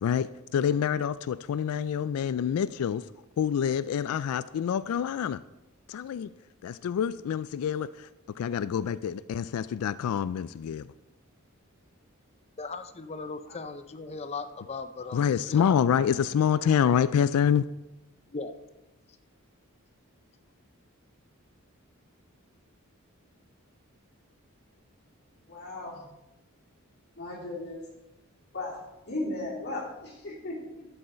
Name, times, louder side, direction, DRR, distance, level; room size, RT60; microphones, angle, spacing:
voice 1, 0.0-3.1 3.4-5.4 5.9-6.3 6.6-8.1 8.4-10.9 15.1-17.7, left 8 dB, 90° left, 16 dB, 0.3 m, -27 dB
voice 2, 12.6-15.7 18.3-18.5, left 4 dB, 30° left, 11 dB, 0.5 m, -38 dB
voice 3, 25.5-26.0 27.2-27.8 28.5-28.8 29.1-30.9, left 2 dB, 50° left, -5 dB, 3.3 m, -36 dB
11.5 x 7.8 x 4.3 m, 1.0 s
head